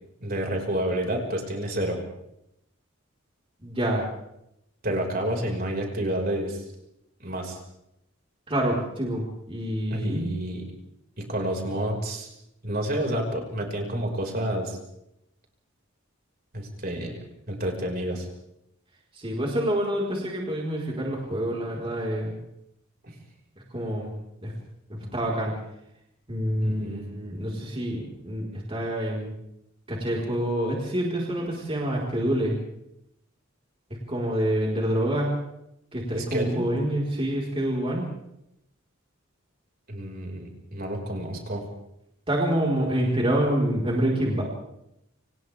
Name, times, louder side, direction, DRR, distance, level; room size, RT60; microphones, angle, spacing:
voice 1, 0.2-2.0 4.8-6.6 7.2-7.6 9.9-10.6 11.2-12.3 12.6-14.8 16.5-17.2 17.5-18.3 23.0-23.2 26.6-27.0 36.1-36.7 39.9-41.6, right 1 dB, 45° right, 1 dB, 5.6 m, -29 dB
voice 2, 3.6-4.1 8.5-10.3 19.1-22.4 23.7-24.2 24.4-24.5 24.9-25.5 26.3-29.3 29.9-32.5 34.1-35.3 35.9-38.0 42.3-44.4, right 1 dB, 25° right, -3 dB, 4.7 m, -27 dB
29.5 x 27.5 x 3.6 m, 0.82 s
head